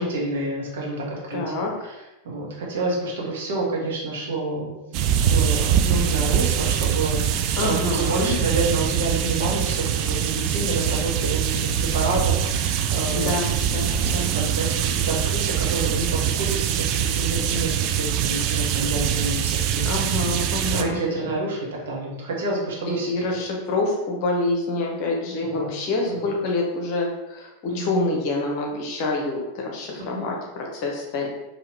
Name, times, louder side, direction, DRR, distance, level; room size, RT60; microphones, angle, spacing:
voice 1, 0.0-1.4 1.8-2.0 2.2-5.0 5.3-13.3 14.2-16.8 17.1-20.0 20.7-23.1 25.5-25.7 26.1-26.3 27.7-27.9 30.1-30.3, right 2 dB, 60° right, -3 dB, 1.3 m, -28 dB
voice 2, 1.3-1.7 7.6-8.3 13.1-14.3 19.8-21.0 22.9-31.3, left 2 dB, 45° left, 0 dB, 1.0 m, -27 dB
sound 1, 4.9-20.8, right 9 dB, 40° right, 0.3 m, -23 dB
4.8 x 2.9 x 3.4 m, 0.98 s
figure-of-eight pair, 90°, 0 cm